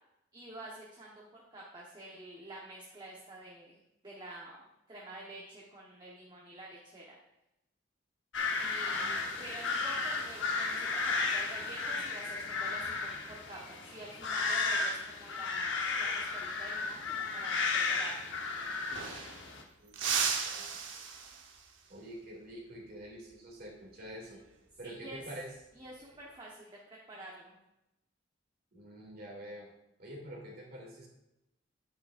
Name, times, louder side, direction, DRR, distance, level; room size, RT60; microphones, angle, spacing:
voice 1, 0.3-7.2 8.6-18.3 24.8-25.2 25.7-26.8 27.1-27.6, right 1 dB, 25° right, -4 dB, 1.1 m, -48 dB
sound 1, 8.3-19.6, left 4 dB, 75° left, 1.0 m, -34 dB
voice 2, 8.9-9.3 19.8-20.0 20.4-20.7 21.9-24.4 24.8-25.5 28.7-29.7 30.0-31.1, equal, 55° right, -1 dB, 2.3 m, -46 dB
sound 2, 18.3-18.4 18.6-19.5 19.9-21.7 24.2-24.5 25.9-26.4, right 6 dB, 80° right, 1.0 m, -36 dB
8.7 x 8.6 x 2.5 m, 0.89 s
head